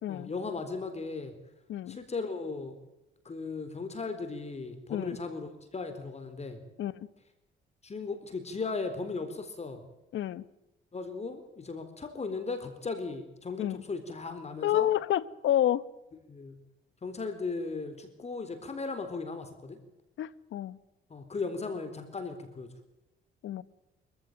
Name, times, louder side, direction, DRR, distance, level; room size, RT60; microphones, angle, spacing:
voice 1, 0.1-1.3 1.9-2.8 3.2-6.6 7.8-9.8 10.9-14.9 16.3-16.6 17.0-19.8 21.1-22.7, left 4 dB, 35° left, 4.0 m, -37 dB
voice 2, 10.1-10.4 13.6-13.8 14.6-15.8 20.2-20.8 23.4-23.6, left 12 dB, 75° left, 1.1 m, -29 dB
25.0 x 15.0 x 9.2 m
cardioid pair, 90°, 20 cm